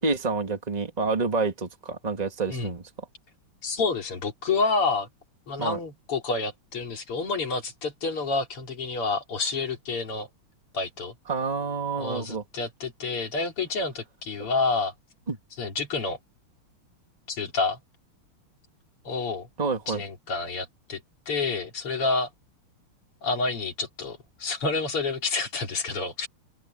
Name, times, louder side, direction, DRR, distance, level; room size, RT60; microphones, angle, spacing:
voice 1, 0.0-2.8 5.6-5.8 11.3-12.4 15.3-15.4 19.6-20.0, right 4 dB, 20° right, 2.0 m, -28 dB
voice 2, 3.6-5.1 5.5-10.3 10.7-11.1 12.0-14.9 15.6-16.2 17.3-17.8 19.0-19.5 19.9-21.0 21.3-22.3 23.2-26.3, left 3 dB, 85° left, 4.3 m, -29 dB
open air
omnidirectional pair, 2.4 m